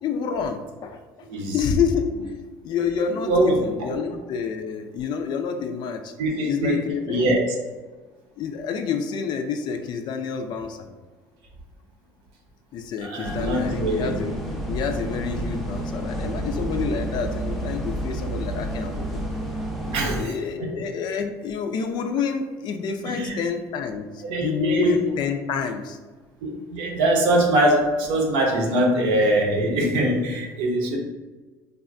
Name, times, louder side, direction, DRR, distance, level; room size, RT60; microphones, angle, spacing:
voice 1, 0.0-1.0 1.5-2.1 2.6-6.1 6.5-7.4 8.4-10.9 12.7-14.4 14.7-19.2 20.1-26.0, left 6 dB, 55° left, 6 dB, 0.4 m, -28 dB
voice 2, 3.3-3.6 3.9-4.0 6.2-7.4 13.0-14.1 19.9-20.3 20.6-20.7 23.0-23.4 24.2-25.0 26.4-31.0, right 1 dB, 70° right, 0 dB, 0.7 m, -22 dB
sound 1, 13.2-20.2, right 1 dB, ahead, 0.6 m, -30 dB
3.3 x 2.2 x 2.5 m, 1.3 s
hypercardioid pair, 70°, 9 cm